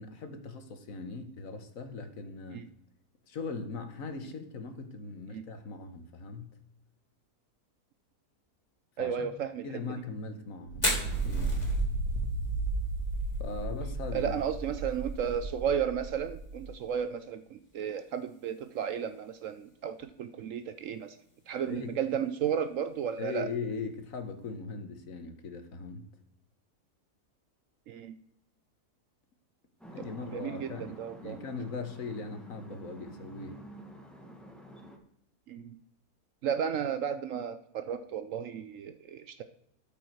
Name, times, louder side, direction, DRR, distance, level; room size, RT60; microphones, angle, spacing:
voice 1, 0.0-2.7 3.3-6.6 9.0-9.3 9.6-10.9 11.2-11.7 13.4-14.3 21.6-22.0 23.2-26.1 29.9-33.6, left 4 dB, 60° left, 8 dB, 1.5 m, -40 dB
voice 2, 9.0-9.8 14.1-21.2 21.5-23.5 27.9-28.2 30.3-31.4 35.5-35.8 36.4-39.4, right 8 dB, 65° right, 10 dB, 0.8 m, -33 dB
Fire, 10.7-24.6, left 1 dB, 25° left, 3.2 m, -43 dB
sound 1, 10.7-16.7, right 2 dB, 80° right, 1.5 m, -33 dB
sound 2, 29.8-35.0, equal, ahead, 1.1 m, -49 dB
12.5 x 5.5 x 4.6 m, 0.77 s
omnidirectional pair, 1.7 m